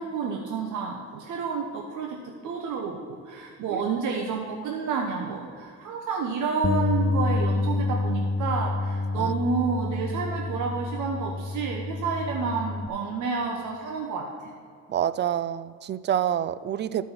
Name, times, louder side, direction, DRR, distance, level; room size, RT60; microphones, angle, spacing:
voice 1, 0.0-2.2 2.4-14.5, right 5 dB, 80° right, 1 dB, 1.1 m, -30 dB
Bass guitar, 6.6-12.9, left 3 dB, 25° left, 0.5 m, -28 dB
voice 2, 14.9-17.0, right 10 dB, 35° right, 15 dB, 0.4 m, -27 dB
12.5 x 5.1 x 5.8 m, 2.2 s
cardioid pair, 90°, 30 cm